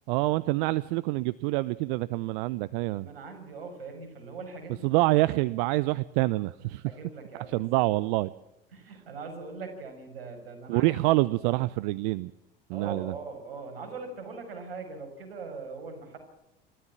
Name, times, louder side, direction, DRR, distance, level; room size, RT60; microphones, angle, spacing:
voice 1, 0.1-3.1 4.8-6.9 7.5-8.3 10.7-12.3 12.7-13.1, right 20 dB, 60° right, 19 dB, 0.7 m, -26 dB
voice 2, 3.0-5.1 6.8-7.9 8.7-10.9 12.7-16.2, right 4 dB, 80° right, 5 dB, 6.2 m, -41 dB
28.5 x 13.5 x 7.4 m, 0.95 s
hypercardioid pair, 75°, 29 cm